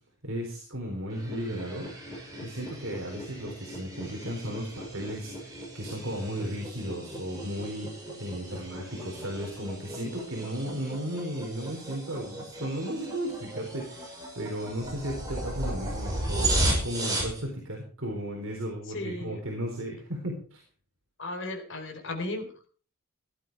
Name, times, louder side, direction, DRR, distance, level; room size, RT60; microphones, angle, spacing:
voice 1, 0.2-1.9 2.4-20.6, equal, 60° right, 0 dB, 3.9 m, -35 dB
sound 1, 1.1-17.4, right 1 dB, 15° right, 6.0 m, -35 dB
voice 2, 18.9-19.4 21.2-22.7, left 2 dB, 55° left, 5 dB, 3.9 m, -35 dB
16.5 x 11.5 x 4.7 m, 0.42 s
head